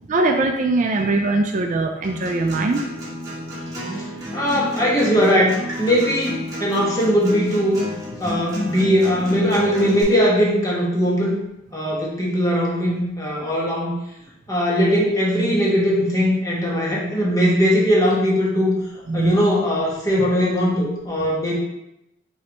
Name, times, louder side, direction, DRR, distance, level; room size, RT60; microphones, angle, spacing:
voice 1, 0.1-2.9 19.1-19.4 20.2-20.3, right 2 dB, 40° right, 4 dB, 0.3 m, -21 dB
Acoustic guitar, 2.0-10.0, left 1 dB, 20° right, 1.3 m, -31 dB
voice 2, 4.3-7.8 8.2-11.3 11.7-13.9 14.5-18.7 19.1-21.5, equal, 20° left, -4 dB, 1.1 m, -20 dB
5.5 x 3.2 x 3.0 m, 0.86 s
head